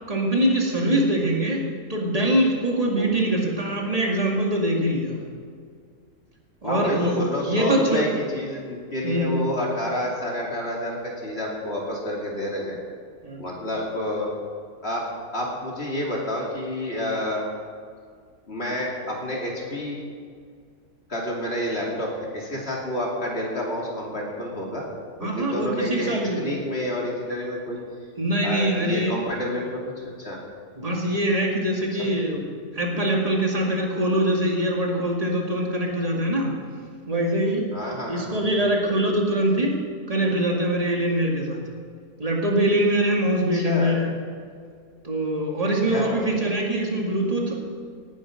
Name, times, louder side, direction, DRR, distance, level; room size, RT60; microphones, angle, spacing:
voice 1, 0.1-5.2 6.6-8.1 9.0-9.4 13.2-13.4 25.2-26.4 28.2-29.2 30.8-32.4 32.7-36.5 37.1-37.6 38.1-39.8 40.1-41.6 42.2-44.1 45.0-47.6, right 1 dB, 25° right, -1 dB, 2.2 m, -23 dB
voice 2, 6.6-12.8 13.4-14.3 14.8-15.1 15.3-17.4 18.5-20.0 21.1-24.9 25.2-27.8 28.4-30.4 32.0-32.1 37.7-38.4 43.5-44.0 45.9-46.3, left 1 dB, 45° left, -3 dB, 2.8 m, -29 dB
18.5 x 10.0 x 5.1 m, 2.1 s
omnidirectional pair, 1.5 m